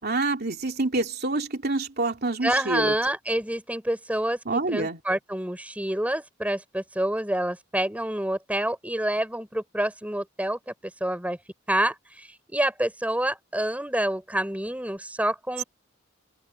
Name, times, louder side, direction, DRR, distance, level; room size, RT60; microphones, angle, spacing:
voice 1, 0.0-2.9 4.4-5.0, right 2 dB, 50° right, 3.0 m, -27 dB
voice 2, 2.4-10.7 11.0-11.4 11.7-15.6, right 1 dB, 5° right, 4.2 m, -27 dB
open air
head